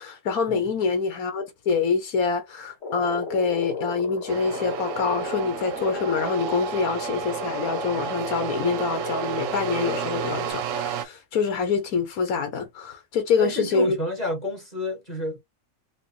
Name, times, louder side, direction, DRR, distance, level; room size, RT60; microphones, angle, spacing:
voice 1, 0.0-14.0, left 5 dB, 65° left, 1.6 m, -26 dB
sound 1, 2.8-10.5, left 3 dB, 50° left, 1.4 m, -34 dB
sound 2, 4.3-11.1, right 9 dB, 65° right, 0.8 m, -32 dB
voice 2, 13.4-15.4, equal, 25° left, 1.5 m, -30 dB
4.9 x 2.2 x 3.4 m
omnidirectional pair, 1.7 m